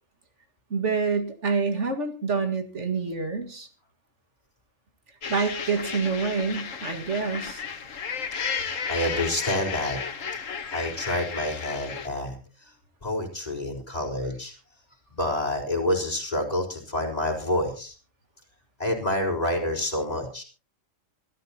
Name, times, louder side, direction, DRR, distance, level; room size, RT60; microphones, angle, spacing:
voice 1, 0.7-3.7 5.3-7.6, right 5 dB, 60° right, 5 dB, 2.3 m, -27 dB
sound 1, 5.2-12.1, left 6 dB, 75° left, 1.7 m, -33 dB
voice 2, 8.9-10.0 10.7-12.7 13.0-14.5 15.1-17.9 18.8-20.4, left 1 dB, 30° left, 0 dB, 4.2 m, -28 dB
25.5 x 12.5 x 2.9 m, 0.35 s
omnidirectional pair, 1.3 m